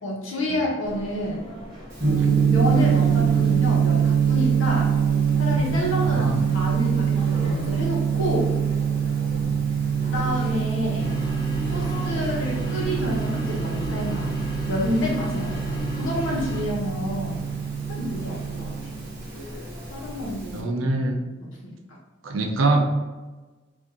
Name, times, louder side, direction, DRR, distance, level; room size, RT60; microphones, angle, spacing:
voice 1, 0.0-1.4 2.0-4.9 5.4-6.3 6.5-8.5 10.1-11.0 11.7-14.3 14.7-17.4 18.0-19.0 19.9-20.8 21.6-21.7, equal, 80° left, -3 dB, 0.9 m, -29 dB
sound 1, 0.8-20.3, equal, 20° right, 0.9 m, -40 dB
Gong, 1.9-20.6, right 7 dB, 50° right, 0.9 m, -24 dB
voice 2, 6.0-6.4 9.4-9.6 20.5-21.2 22.2-22.8, right 2 dB, 80° right, 3 dB, 0.5 m, -24 dB
sound 2, 11.0-16.7, left 2 dB, 20° left, 0.4 m, -33 dB
2.8 x 2.5 x 3.6 m, 1.2 s
head